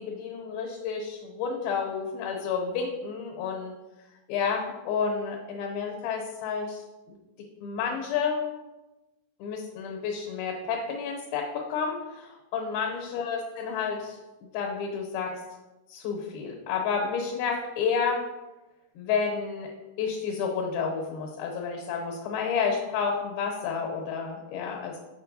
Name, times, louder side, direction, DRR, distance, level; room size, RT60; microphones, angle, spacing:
voice 1, 0.0-3.7 4.3-6.8 7.6-8.5 9.4-14.2 14.5-15.4 15.9-18.3 19.0-19.7 20.0-25.0, left 6 dB, 80° left, 0 dB, 2.6 m, -30 dB
7.1 x 5.3 x 2.7 m, 1.1 s
omnidirectional pair, 4.4 m